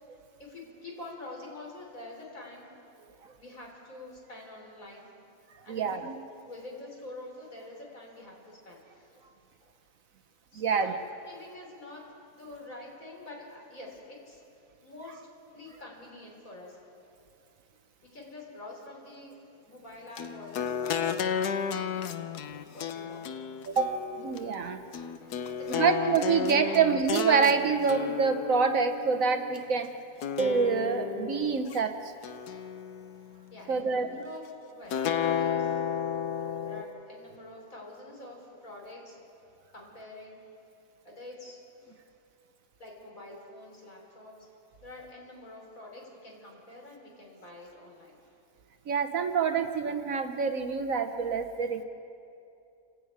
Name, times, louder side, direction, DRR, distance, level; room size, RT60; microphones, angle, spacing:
voice 1, 0.4-2.7 3.4-5.1 5.6-5.9 6.4-9.2 9.6-9.7 10.5-11.0 11.3-14.4 14.8-15.2 15.5-16.8 18.0-19.4 19.6-21.2 21.5-22.1 22.7-23.3 25.5-26.0 26.6-26.7 33.5-35.8 36.6-39.2 39.7-40.4 41.0-42.0 42.8-44.4 44.8-48.2, left 2 dB, 60° left, -2 dB, 4.9 m, -46 dB
voice 2, 5.7-6.2 10.6-10.9 23.7-23.9 24.2-24.8 25.7-29.9 30.4-31.9 33.7-34.1 48.9-51.8, right 6 dB, 60° right, 7 dB, 1.3 m, -26 dB
sound 1, 20.2-29.6 30.2-31.8 32.2-33.4 34.9-36.8, left 8 dB, 85° left, 1.4 m, -33 dB
29.0 x 10.5 x 8.9 m, 2.6 s
omnidirectional pair, 1.6 m